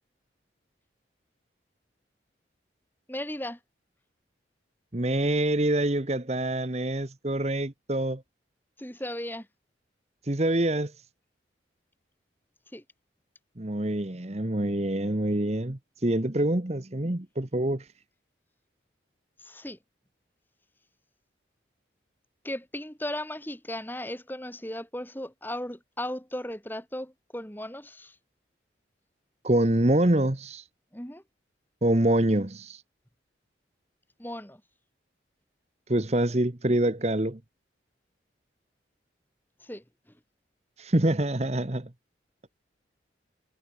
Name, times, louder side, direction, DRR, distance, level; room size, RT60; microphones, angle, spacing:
voice 1, 3.1-3.6 8.8-9.5 12.7-12.8 19.4-19.8 22.4-28.1 30.9-31.2 34.2-34.6 39.6-39.8, left 1 dB, 10° left, 4.0 m, -36 dB
voice 2, 4.9-8.2 10.2-10.9 13.6-17.9 29.4-30.6 31.8-32.8 35.9-37.4 40.8-41.9, right 1 dB, 35° right, 1.2 m, -26 dB
head